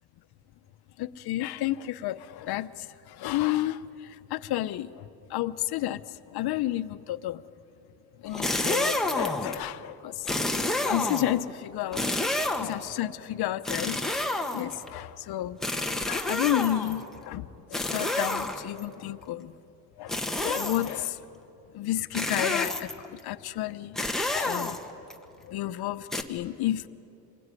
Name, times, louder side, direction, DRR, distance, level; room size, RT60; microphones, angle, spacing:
voice 1, 1.0-7.4 8.2-10.3 10.8-12.0 12.6-14.0 14.5-15.6 15.8-19.6 20.0-21.2 21.7-24.0 24.3-24.8 25.4-26.9, left 14 dB, 70° left, 0.9 m, -31 dB
sound 1, 8.3-9.6 10.3-11.4 11.9-12.9 13.7-14.9 15.6-17.0 17.7-18.8 20.1-21.0 22.1-23.1 24.0-25.1 26.1-26.2, left 1 dB, ahead, 1.3 m, -29 dB
27.5 x 22.0 x 9.8 m
cardioid pair, 150°, 39 cm